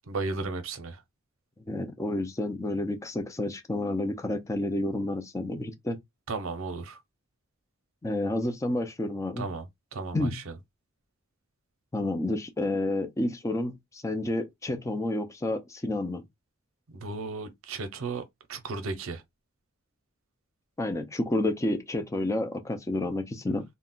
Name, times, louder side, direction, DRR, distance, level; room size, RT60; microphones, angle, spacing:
voice 1, 0.1-1.0 6.3-7.0 9.4-9.7 9.9-10.5 16.9-18.2 18.5-19.2, right 3 dB, 70° right, 0.6 m, -34 dB
voice 2, 1.7-6.0 8.0-9.5 10.1-10.4 11.9-16.2 20.8-23.6, left 1 dB, 15° left, 0.4 m, -30 dB
2.3 x 2.1 x 3.6 m
head